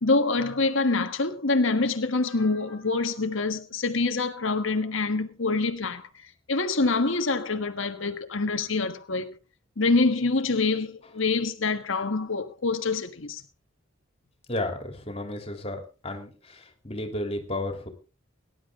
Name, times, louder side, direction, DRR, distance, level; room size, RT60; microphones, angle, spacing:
voice 1, 0.0-9.4 9.8-13.4, left 3 dB, 75° left, 1.5 m, -26 dB
voice 2, 14.5-17.9, left 1 dB, 30° left, 3.1 m, -33 dB
18.5 x 11.0 x 3.7 m
head